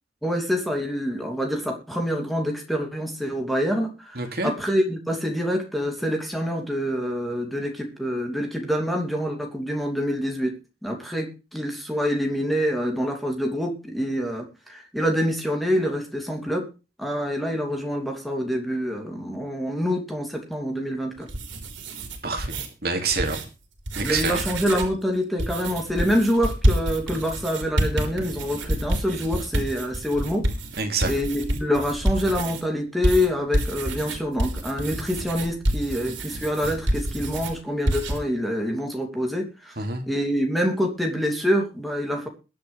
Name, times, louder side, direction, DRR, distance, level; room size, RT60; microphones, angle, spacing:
voice 1, 0.2-10.5 10.8-16.7 17.0-21.3 24.0-30.5 31.0-39.7 40.0-42.3, equal, ahead, 1 dB, 2.8 m, -26 dB
voice 2, 4.2-4.5 22.2-23.4 24.0-24.4 30.8-31.1 39.8-40.0, right 4 dB, 55° right, 4 dB, 2.6 m, -27 dB
sound 1, 21.2-22.7 23.1-23.4 23.8-25.0 25.4-32.6 33.0-37.5 37.9-38.2, right 1 dB, 80° right, 4.3 m, -27 dB
22.0 x 7.8 x 3.4 m, 0.32 s
head